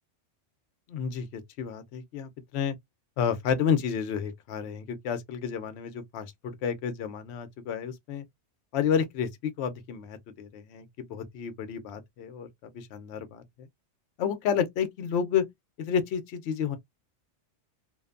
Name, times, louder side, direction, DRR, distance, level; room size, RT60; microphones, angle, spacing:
voice 1, 0.9-2.7 3.2-8.2 8.7-12.5 12.7-13.7 14.2-15.4 15.8-16.8, left 7 dB, 70° left, 0.8 m, -30 dB
2.5 x 2.1 x 2.3 m
omnidirectional pair, 1.2 m